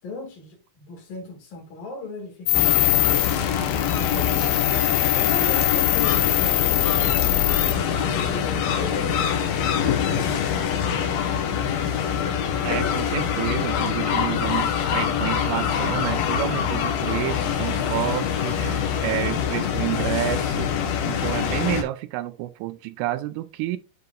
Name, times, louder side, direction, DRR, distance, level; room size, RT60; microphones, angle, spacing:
voice 1, 0.0-3.2 4.1-10.5, left 2 dB, 55° left, 3.5 m, -37 dB
sound 1, 2.5-7.7, left 19 dB, 85° left, 3.2 m, -22 dB
sound 2, 2.5-21.8, left 8 dB, 70° left, 2.4 m, -24 dB
voice 2, 12.6-20.7 21.0-23.8, right 15 dB, 90° right, 3.2 m, -29 dB
9.4 x 5.2 x 2.4 m
omnidirectional pair, 5.6 m